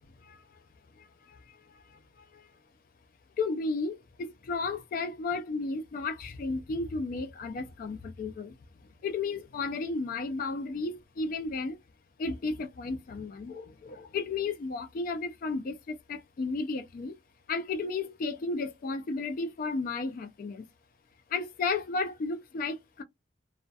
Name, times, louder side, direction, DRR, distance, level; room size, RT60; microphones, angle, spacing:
voice 1, 3.4-8.5 9.0-11.8 12.2-17.1 17.5-20.6 21.3-23.0, left 3 dB, 45° left, 0.3 m, -33 dB
2.2 x 2.1 x 2.7 m
head